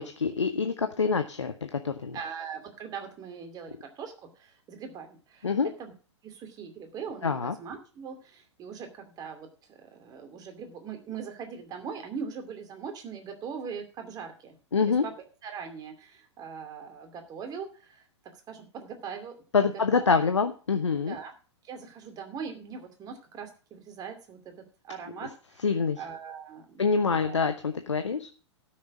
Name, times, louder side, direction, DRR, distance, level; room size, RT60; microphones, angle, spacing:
voice 1, 0.0-2.2 5.4-5.7 7.2-7.5 14.7-15.0 19.5-21.2 25.6-26.0 26.8-28.3, left 5 dB, 75° left, 8 dB, 0.9 m, -26 dB
voice 2, 2.1-5.9 6.2-14.6 14.9-15.1 15.4-18.0 18.5-19.4 19.9-20.0 21.1-21.3 21.6-24.5 24.8-25.7 26.0-27.4, right 6 dB, 25° right, 5 dB, 2.6 m, -41 dB
12.5 x 6.5 x 6.1 m, 0.37 s
figure-of-eight pair, 105°, 15 cm